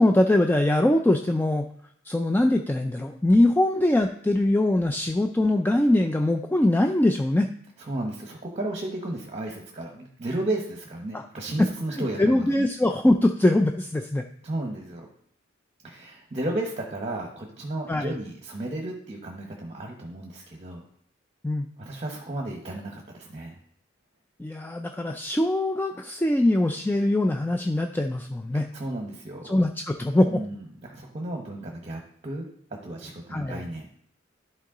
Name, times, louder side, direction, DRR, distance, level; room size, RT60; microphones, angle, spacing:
voice 1, 0.0-1.7 2.1-7.5 11.1-11.2 11.6-14.2 17.9-18.2 21.4-21.7 24.4-28.7 29.4-30.4 33.3-33.6, left 1 dB, 10° left, 5 dB, 0.3 m, -22 dB
voice 2, 7.8-12.5 14.4-15.1 15.8-20.8 21.8-23.6 28.5-29.6 30.2-32.5 32.8-33.9, right 1 dB, 35° right, 1 dB, 1.1 m, -33 dB
11.5 x 4.6 x 3.8 m, 0.65 s
head